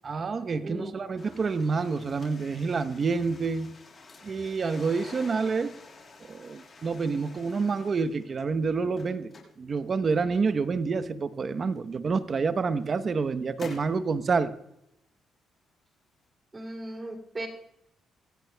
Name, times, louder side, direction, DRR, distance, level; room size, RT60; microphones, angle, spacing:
voice 1, 0.0-3.7 4.2-5.8 6.3-9.3 9.6-14.5, right 4 dB, 40° right, 0.9 m, -28 dB
voice 2, 0.6-1.0 16.5-17.5, right 1 dB, 25° right, 2.7 m, -37 dB
sound 1, 1.2-8.4 8.8-10.8 11.7-11.8 12.5-14.0, left 3 dB, 35° left, 5.9 m, -49 dB
25.0 x 16.0 x 2.3 m
cardioid pair, 90°, 0 cm